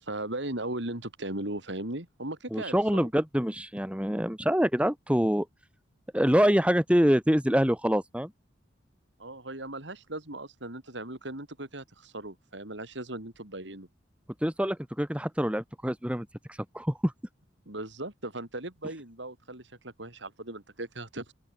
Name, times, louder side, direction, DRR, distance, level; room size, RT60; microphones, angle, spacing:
voice 1, 0.0-3.1 9.2-13.9 17.7-21.3, right 1 dB, 75° right, 4.3 m, -38 dB
voice 2, 2.5-5.5 6.1-8.3 14.4-16.3 16.7-17.1, equal, 5° right, 1.7 m, -25 dB
open air
head